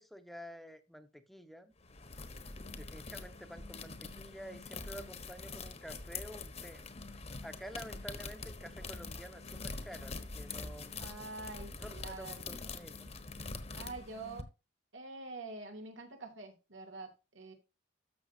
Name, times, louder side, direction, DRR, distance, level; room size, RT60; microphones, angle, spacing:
voice 1, 0.0-1.7 2.8-6.8 7.4-11.0 11.8-13.1, equal, ahead, 8 dB, 1.0 m, -50 dB
sound 1, 1.8-14.4, left 3 dB, 35° left, 1.2 m, -45 dB
voice 2, 11.0-12.6 13.7-14.5 14.9-17.5, right 3 dB, 85° right, 3 dB, 3.0 m, -46 dB
13.5 x 6.4 x 2.8 m, 0.27 s
head